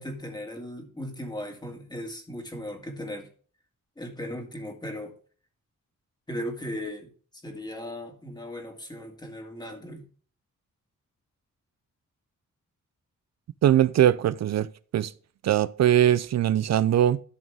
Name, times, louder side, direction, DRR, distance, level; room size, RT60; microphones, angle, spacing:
voice 1, 0.0-3.3 4.0-5.1 6.3-7.1 7.4-10.0, left 1 dB, 15° left, 2.0 m, -37 dB
voice 2, 13.6-14.7 14.9-15.1 15.4-17.2, right 11 dB, 60° right, 0.4 m, -21 dB
12.5 x 6.4 x 3.5 m
wide cardioid pair, 160°, 31 cm